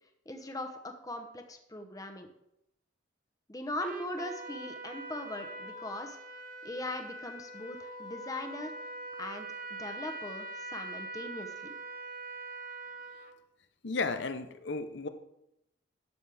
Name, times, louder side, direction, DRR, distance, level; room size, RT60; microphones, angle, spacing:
voice 1, 0.3-2.3 3.5-6.2 6.6-8.7 9.2-11.7, left 1 dB, 20° left, 6 dB, 0.9 m, -40 dB
Trumpet, 3.8-13.4, right 2 dB, 45° right, 0.8 m, -43 dB
voice 2, 13.8-15.1, left 3 dB, 65° left, 10 dB, 0.8 m, -34 dB
12.0 x 7.4 x 3.5 m, 0.82 s
head